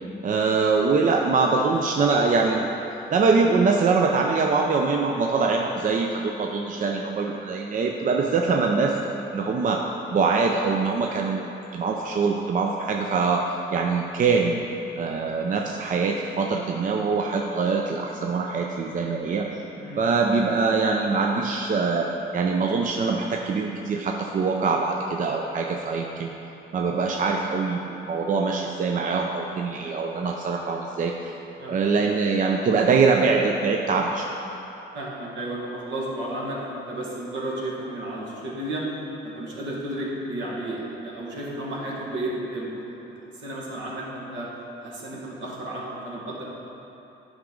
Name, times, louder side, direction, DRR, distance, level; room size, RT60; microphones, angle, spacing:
voice 1, 0.2-2.8 3.1-9.0 9.3-9.9 10.1-11.5 11.7-14.6 15.0-19.6 20.0-26.3 26.7-31.3 31.7-34.3, right 4 dB, 40° right, 1 dB, 0.5 m, -23 dB
voice 2, 31.6-31.9 34.9-38.8 39.2-43.1 43.4-44.5 44.8-46.5, right 1 dB, 70° right, -4 dB, 1.7 m, -33 dB
8.8 x 5.1 x 3.7 m, 2.9 s
cardioid pair, 90°, 20 cm